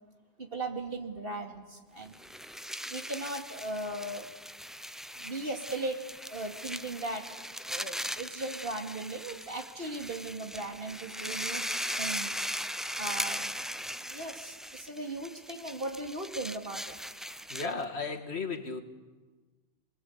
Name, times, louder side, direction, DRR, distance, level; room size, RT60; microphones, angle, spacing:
voice 1, 0.4-2.2 2.9-4.3 5.2-6.0 6.3-11.7 12.0-12.3 13.0-13.6 14.0-17.0, right 2 dB, 60° right, 3 dB, 2.7 m, -38 dB
sound 1, 2.1-17.8, equal, ahead, 0.6 m, -39 dB
voice 2, 17.5-18.8, left 4 dB, 75° left, 5 dB, 2.0 m, -34 dB
29.0 x 21.5 x 8.2 m, 1.3 s
omnidirectional pair, 1.1 m